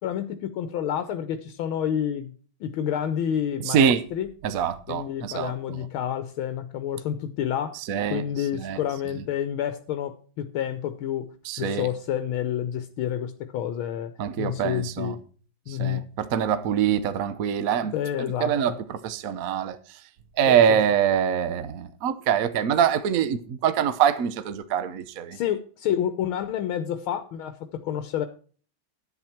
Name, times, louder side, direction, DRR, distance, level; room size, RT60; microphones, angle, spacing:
voice 1, 0.0-2.3 2.6-4.3 4.9-7.8 8.1-11.3 11.6-14.1 14.4-15.2 15.7-16.1 17.9-18.7 20.5-20.8 25.3-28.3, left 10 dB, 80° left, 1.6 m, -29 dB
voice 2, 3.7-4.0 4.4-5.8 7.9-8.2 8.5-8.8 11.4-11.9 14.2-15.2 15.7-17.9 18.4-19.8 20.4-25.4, right 8 dB, 60° right, 0.9 m, -24 dB
10.5 x 8.9 x 4.4 m
omnidirectional pair, 2.3 m